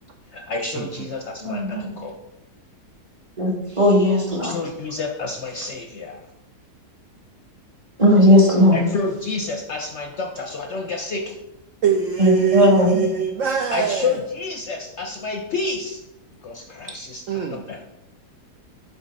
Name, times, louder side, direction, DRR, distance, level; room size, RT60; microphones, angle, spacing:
voice 1, 0.3-2.2 4.4-6.2 8.7-11.3 13.7-16.0 16.4-17.8, left 4 dB, 60° left, 2 dB, 0.8 m, -29 dB
voice 2, 1.4-1.9 3.4-4.6 8.0-8.8 12.2-13.1, left 1 dB, 25° right, -1 dB, 1.0 m, -16 dB
voice 3, 11.8-14.0 17.3-17.6, right 6 dB, 70° right, 5 dB, 0.7 m, -22 dB
7.8 x 3.3 x 5.2 m, 0.93 s
omnidirectional pair, 1.8 m